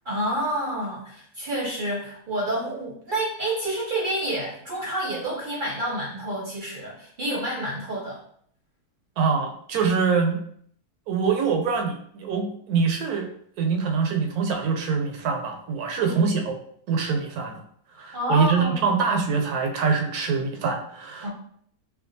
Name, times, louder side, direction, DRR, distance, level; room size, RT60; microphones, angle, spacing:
voice 1, 0.1-8.2 16.0-16.2 18.1-18.8 21.2-21.3, right 1 dB, 45° right, -3 dB, 0.7 m, -29 dB
voice 2, 9.2-10.4 11.1-13.3 13.6-16.6 16.9-17.6 17.9-21.3, right 5 dB, 80° right, 4 dB, 1.1 m, -24 dB
4.4 x 2.3 x 2.6 m, 0.64 s
omnidirectional pair, 1.6 m